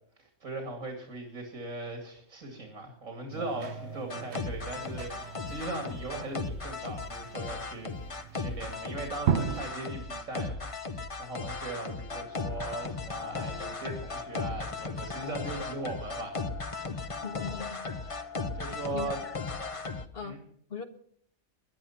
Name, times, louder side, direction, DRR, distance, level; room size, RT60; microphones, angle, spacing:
voice 1, 0.2-16.4 18.5-19.2 20.2-20.4, right 2 dB, 90° right, 3 dB, 2.9 m, -39 dB
sound 1, 3.3-9.7, right 8 dB, 65° right, 1.0 m, -36 dB
sound 2, 3.4-20.1, left 4 dB, 30° left, 0.9 m, -37 dB
voice 2, 17.2-17.8 18.9-19.3 20.1-20.4 20.7-20.8, left 6 dB, 50° left, 7 dB, 1.7 m, -39 dB
19.5 x 11.0 x 5.8 m, 0.65 s
omnidirectional pair, 1.3 m